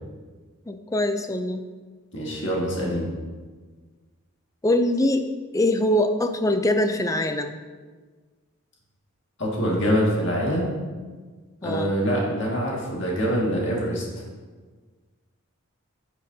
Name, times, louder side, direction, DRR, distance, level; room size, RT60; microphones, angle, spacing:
voice 1, 0.7-1.6 2.8-3.1 4.6-5.3 5.5-7.6 11.6-11.9, left 1 dB, 15° left, 7 dB, 0.4 m, -23 dB
voice 2, 2.1-3.1 9.4-10.7 11.6-14.0, equal, 55° left, -3 dB, 1.9 m, -24 dB
9.1 x 8.8 x 2.8 m, 1.4 s
head